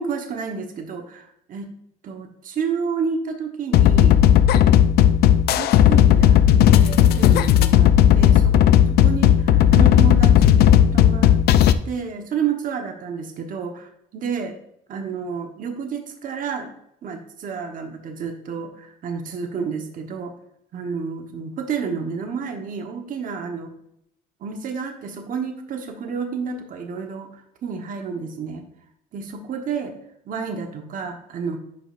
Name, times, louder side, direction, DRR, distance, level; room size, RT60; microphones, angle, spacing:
voice 1, 0.0-1.7 2.0-4.2 5.6-6.4 6.7-11.4 11.8-14.6 14.9-16.7 17.0-20.3 20.7-23.7 24.4-28.7 29.1-30.0 30.2-31.6, right 6 dB, 55° right, 4 dB, 1.1 m, -30 dB
sound 1, 3.7-11.7, left 10 dB, 70° left, 0.5 m, -14 dB
10.5 x 5.3 x 2.5 m, 0.74 s
cardioid pair, 110°, 17 cm